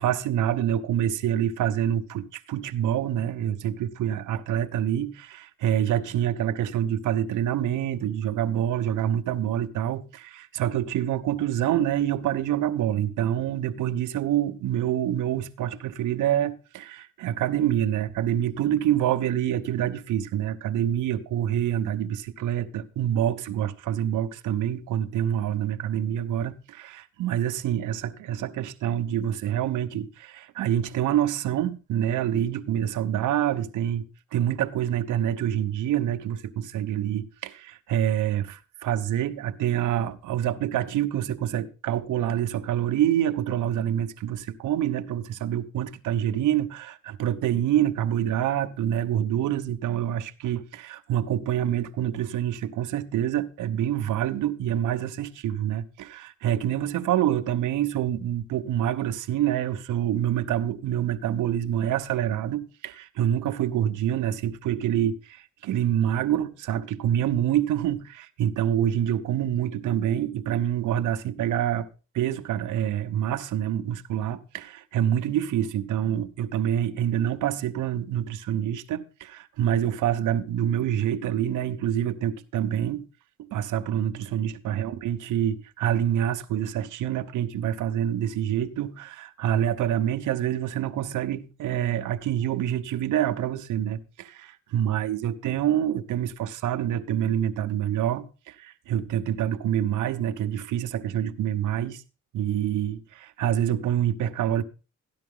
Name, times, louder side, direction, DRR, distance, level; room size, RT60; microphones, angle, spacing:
voice 1, 0.0-34.0 34.3-71.9 72.1-83.1 83.4-102.0 102.3-104.6, right 10 dB, 80° right, 1.1 m, -26 dB
13.5 x 10.5 x 3.9 m
cardioid pair, 90°, 30 cm